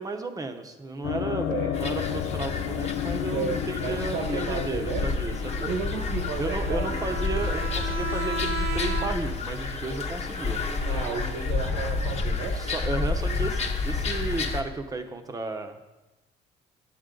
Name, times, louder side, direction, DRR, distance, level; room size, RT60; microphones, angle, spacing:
voice 1, 0.0-5.7 6.4-10.6 12.5-15.8, right 3 dB, 20° right, 5 dB, 1.0 m, -33 dB
sound 1, 1.0-9.4, left 10 dB, 80° left, 0.5 m, -34 dB
voice 2, 1.5-2.0 3.3-5.1 5.6-7.1 10.8-12.6, right 4 dB, 85° right, 2 dB, 1.4 m, -33 dB
sound 2, 1.7-14.6, left 4 dB, 40° left, 1.1 m, -30 dB
Bowed string instrument, 6.4-9.5, right 3 dB, 65° right, 1.2 m, -34 dB
9.9 x 8.2 x 3.9 m, 1.1 s
cardioid pair, 110°, 17 cm